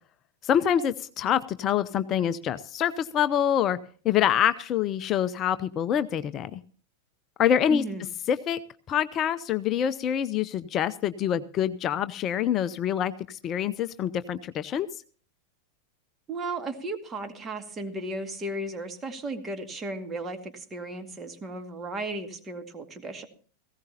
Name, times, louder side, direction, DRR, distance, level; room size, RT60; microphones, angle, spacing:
voice 1, 0.4-3.8 4.0-6.6 7.4-7.8 8.3-8.6 8.9-14.9, left 9 dB, 30° left, 13 dB, 0.6 m, -26 dB
voice 2, 7.7-8.1 16.3-23.3, right 2 dB, 20° right, 6 dB, 2.1 m, -35 dB
18.0 x 16.0 x 2.8 m, 0.42 s
figure-of-eight pair, 90°, 0 cm